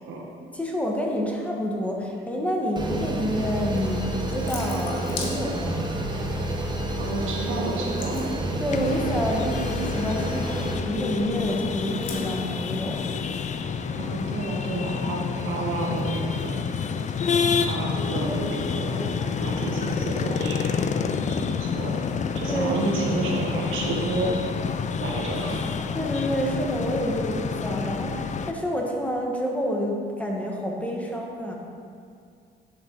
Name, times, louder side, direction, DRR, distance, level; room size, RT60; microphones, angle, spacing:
voice 1, 0.5-5.9 8.6-13.0 22.5-22.7 25.9-31.6, equal, 5° left, -1 dB, 1.3 m, -28 dB
sound 1, 2.8-10.8, right 1 dB, 20° right, 1.0 m, -29 dB
Water tap faucet / Sink (filling or washing) / Drip, 3.7-13.5, left 2 dB, 80° left, 1.4 m, -40 dB
voice 2, 7.0-8.2 14.0-16.7 17.6-19.0 19.4-20.9 21.3-21.9 22.3-24.5 25.0-25.7, right 2 dB, 85° right, -2 dB, 1.4 m, -30 dB
sound 2, 8.7-28.5, left 6 dB, 35° left, 0.4 m, -28 dB
11.0 x 4.5 x 4.0 m, 2.3 s
cardioid pair, 90°, 20 cm